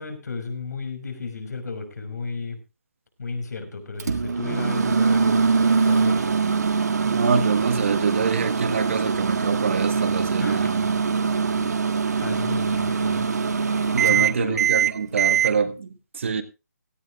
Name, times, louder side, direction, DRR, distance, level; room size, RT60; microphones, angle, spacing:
voice 1, 0.0-2.6 3.2-6.4 10.4-10.8 11.5-11.8 12.2-13.3 14.1-14.6, left 4 dB, 70° left, 5.4 m, -33 dB
Microwave oven, 4.0-15.5, right 5 dB, 70° right, 1.6 m, -22 dB
voice 2, 7.0-10.9 13.9-16.4, right 5 dB, 45° right, 1.6 m, -25 dB
17.5 x 15.0 x 2.5 m
hypercardioid pair, 170°, 9 cm